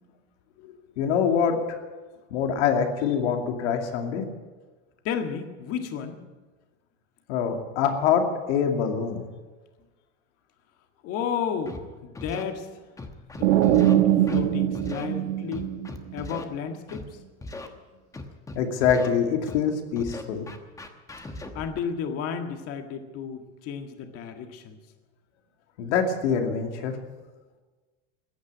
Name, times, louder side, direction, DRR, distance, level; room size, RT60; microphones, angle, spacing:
voice 1, 0.6-1.6 2.3-4.2 7.3-9.3 18.6-20.5 25.8-26.9, left 7 dB, 75° left, 4 dB, 2.6 m, -25 dB
voice 2, 5.1-6.2 11.0-12.7 13.3-15.7 16.1-17.0 21.5-24.8, left 7 dB, 45° left, 6 dB, 1.8 m, -32 dB
Scratching (performance technique), 11.7-11.8 12.1-12.4 13.0-13.9 14.3-14.4 14.7-15.1 15.5-16.4 16.9-17.0 17.4-17.7 18.1-19.1 19.5-19.6 19.9-21.8, left 2 dB, 10° left, 1.1 m, -38 dB
sound 1, 13.4-16.2, right 12 dB, 85° right, 1.3 m, -22 dB
15.5 x 9.9 x 9.6 m, 1.3 s
supercardioid pair, 150°, 35 cm